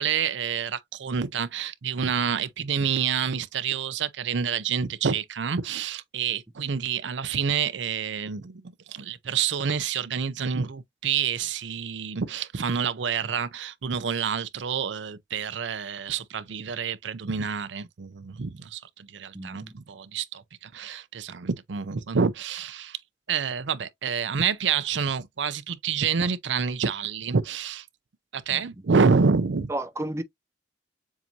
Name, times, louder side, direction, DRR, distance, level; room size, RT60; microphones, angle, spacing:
voice 1, 0.0-8.6 8.9-23.0 23.3-27.9 28.3-29.7, right 6 dB, 75° right, 0.5 m, -28 dB
voice 2, 19.3-19.7 28.5-28.6 29.7-30.2, right 1 dB, 15° right, 0.5 m, -32 dB
7.3 x 2.6 x 2.7 m
head